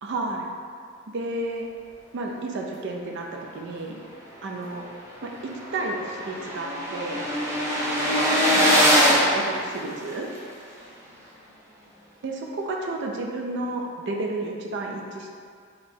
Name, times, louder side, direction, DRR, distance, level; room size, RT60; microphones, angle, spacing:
voice 1, 0.0-0.5 1.1-1.7 2.1-4.0 4.4-4.8 5.2-7.3 8.5-9.0 9.3-10.3 12.2-15.3, right 2 dB, 60° right, 0 dB, 0.4 m, -32 dB
sound 1, 4.8-4.9 5.2-5.3 5.5-10.4, equal, 15° right, 0.7 m, -22 dB
3.0 x 2.8 x 4.3 m, 2.1 s
head